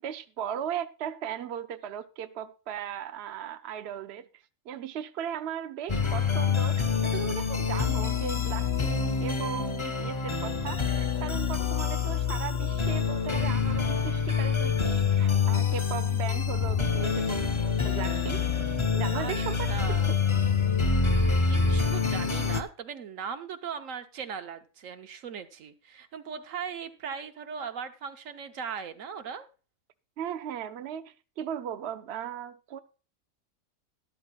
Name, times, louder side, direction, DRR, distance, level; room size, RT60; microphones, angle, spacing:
voice 1, 0.0-17.5 17.8-18.4 18.9-19.7 30.2-32.8, right 9 dB, 60° right, 0.8 m, -37 dB
sound 1, 5.9-22.6, left 5 dB, 30° left, 0.6 m, -26 dB
voice 2, 19.7-20.1 21.4-29.5, right 7 dB, 75° right, 1.3 m, -38 dB
12.5 x 12.0 x 2.3 m
omnidirectional pair, 1.4 m